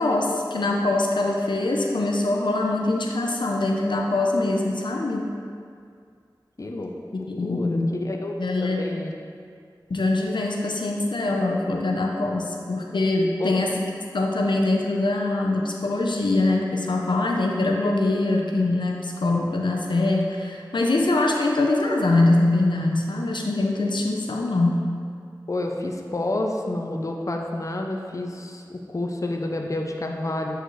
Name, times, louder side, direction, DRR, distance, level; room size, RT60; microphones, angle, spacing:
voice 1, 0.0-5.3 7.3-7.9 8.4-8.9 9.9-13.7 14.1-24.8, left 2 dB, 90° left, 0 dB, 0.6 m, -23 dB
voice 2, 6.6-6.9 7.2-9.1 13.4-13.6 25.5-30.6, left 2 dB, 45° left, 2 dB, 0.5 m, -29 dB
7.9 x 4.7 x 3.1 m, 2.2 s
wide cardioid pair, 60°, 8 cm